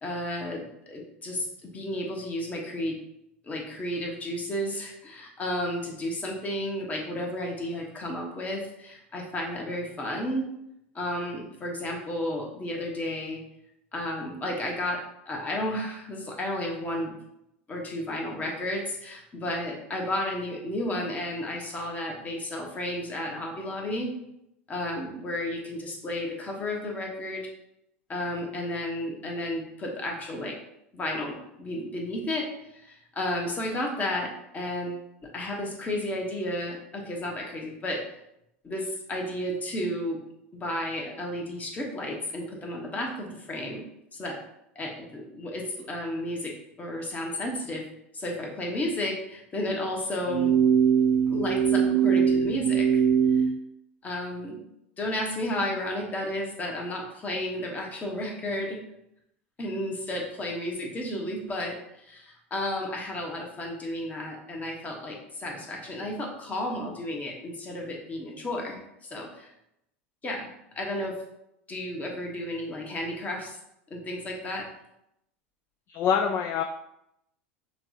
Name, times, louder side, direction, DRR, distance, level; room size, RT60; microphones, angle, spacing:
voice 1, 0.0-3.0 3.4-10.5 10.9-13.4 13.9-15.0 15.3-17.2 17.7-24.1 24.7-27.4 28.1-30.5 30.9-32.5 32.7-38.0 38.6-40.2 40.5-43.8 44.1-44.4 44.7-46.5 46.8-47.8 48.1-50.5 51.3-53.0 54.0-54.6 55.0-58.8 59.6-69.5 70.2-71.2 71.7-73.5 73.9-74.6, left 1 dB, 25° left, 0 dB, 1.0 m, -32 dB
sound 1, 50.3-53.5, right 7 dB, 80° right, 0.5 m, -22 dB
voice 2, 75.9-76.6, left 7 dB, 40° left, 4 dB, 0.3 m, -25 dB
5.7 x 2.3 x 2.7 m, 0.81 s
hypercardioid pair, 85°, 7 cm